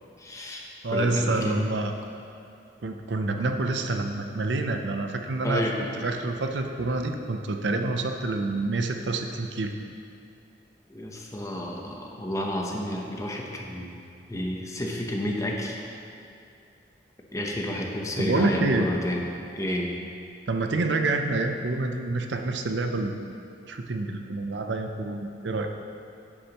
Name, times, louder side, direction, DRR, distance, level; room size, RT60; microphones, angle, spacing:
voice 1, 0.2-1.6 5.4-5.8 10.9-13.9 14.3-15.8 17.3-19.2 19.5-19.9, left 1 dB, 20° left, -1 dB, 0.9 m, -31 dB
voice 2, 0.8-1.9 2.8-5.7 6.0-9.7 18.2-18.9 20.5-23.1 23.7-25.7, right 2 dB, 70° right, 5 dB, 0.6 m, -27 dB
9.8 x 8.6 x 3.0 m, 2.5 s
head